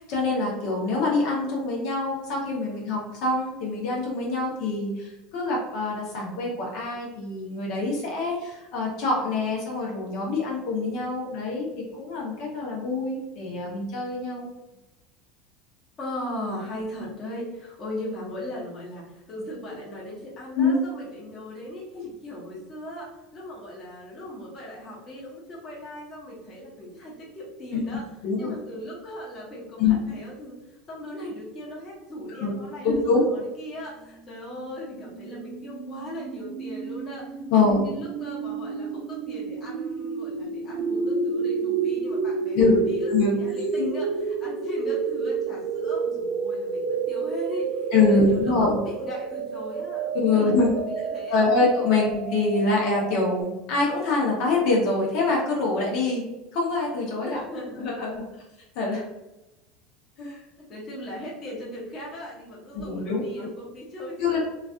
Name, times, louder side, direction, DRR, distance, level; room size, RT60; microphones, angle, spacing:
voice 1, 0.0-11.7 12.0-14.5 20.6-20.7 21.9-22.0 27.7-27.8 28.2-28.5 29.8-30.0 32.4-32.5 32.8-33.2 37.5-37.8 42.5-42.8 43.1-43.3 43.8-43.9 47.9-48.8 50.1-50.7 51.3-56.2 56.5-57.4 57.8-58.2 58.7-59.0 60.2-60.4 62.7-63.5 64.2-64.4, left 3 dB, 55° left, -3 dB, 0.9 m, -24 dB
voice 2, 16.0-28.0 28.4-42.6 42.9-50.7 51.0-51.5 51.9-52.0 57.2-57.9 60.6-64.4, equal, 25° left, -6 dB, 1.0 m, -38 dB
sound 1, 34.3-53.4, right 5 dB, 55° right, 0.3 m, -30 dB
3.2 x 2.4 x 2.4 m, 0.98 s
cardioid pair, 160°, 0 cm